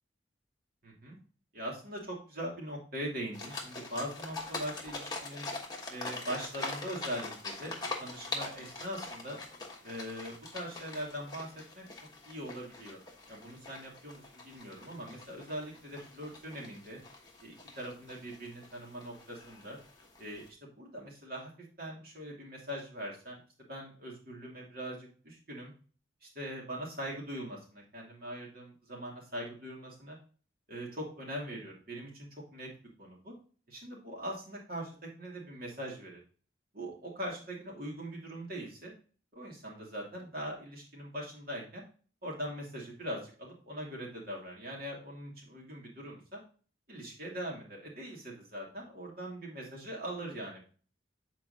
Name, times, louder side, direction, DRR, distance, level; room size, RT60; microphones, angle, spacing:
voice 1, 0.8-1.2 1.5-5.5 5.9-9.4 9.8-11.8 12.3-13.0 13.3-17.0 17.4-19.8 20.2-20.4 20.8-21.5 21.8-23.4 23.7-25.7 26.2-30.2 30.7-32.7 33.0-33.3 33.7-36.2 36.7-38.9 39.3-41.8 42.2-46.4 46.9-50.7, equal, 50° right, -2 dB, 2.7 m, -41 dB
sound 1, 3.3-20.5, left 3 dB, 20° left, 1.2 m, -43 dB
8.5 x 4.5 x 2.7 m, 0.39 s
head